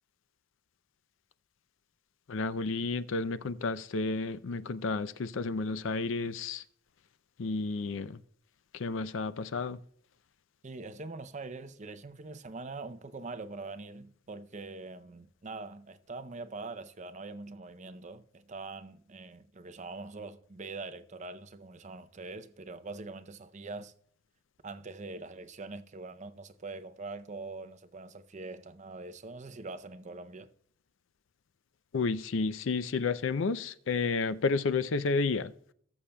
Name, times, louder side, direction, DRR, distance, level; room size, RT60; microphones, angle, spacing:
voice 1, 2.3-6.6 7.4-8.2 8.7-9.8 31.9-35.5, left 4 dB, 65° left, 0.5 m, -31 dB
voice 2, 10.6-23.9 24.6-30.5, right 3 dB, 35° right, 0.5 m, -43 dB
19.0 x 7.0 x 2.2 m
head